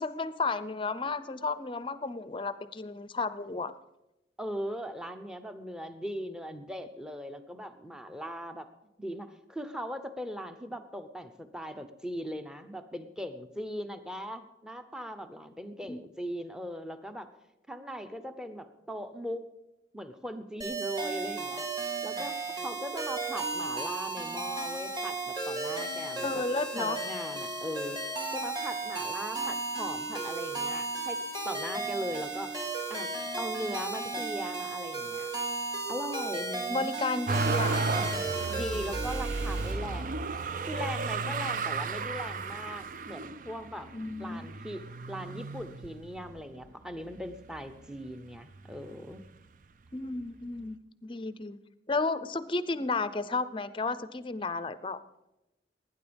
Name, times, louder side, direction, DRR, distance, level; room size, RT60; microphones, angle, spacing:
voice 1, 0.0-3.7 15.9-16.0 26.2-27.0 34.1-34.2 36.7-37.8 43.9-44.5 49.9-51.6 51.9-55.0, left 3 dB, 30° left, 15 dB, 0.6 m, -33 dB
voice 2, 4.4-8.7 9.0-17.3 17.7-19.4 19.9-21.7 22.0-22.4 22.6-26.4 26.7-31.2 31.4-32.6 32.9-33.1 33.4-35.3 35.9-36.9 38.5-40.2 40.7-43.9 44.2-44.8 45.1-49.2, equal, 5° right, 9 dB, 0.8 m, -39 dB
sound 1, 20.6-39.7, right 3 dB, 25° right, 2.3 m, -34 dB
Motor vehicle (road), 37.3-46.4 47.0-47.8 48.1-49.2 50.2-50.3, right 3 dB, 45° right, 0.5 m, -34 dB
19.5 x 9.5 x 5.2 m, 0.96 s
head